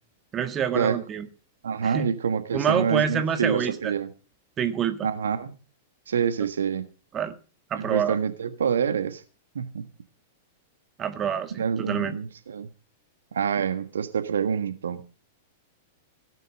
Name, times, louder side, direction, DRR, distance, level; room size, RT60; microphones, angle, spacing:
voice 1, 0.3-1.3 1.8-2.1 2.5-3.9 4.6-5.1 7.1-7.3 7.7-8.2 11.0-12.2, right 8 dB, 25° right, 9 dB, 1.8 m, -27 dB
voice 2, 1.6-4.1 5.0-5.6 6.1-6.8 7.7-9.2 9.5-9.9 11.6-12.7 13.3-15.0, right 7 dB, 70° right, 10 dB, 1.5 m, -27 dB
17.5 x 9.3 x 6.4 m, 0.36 s
figure-of-eight pair, 95°, 0 cm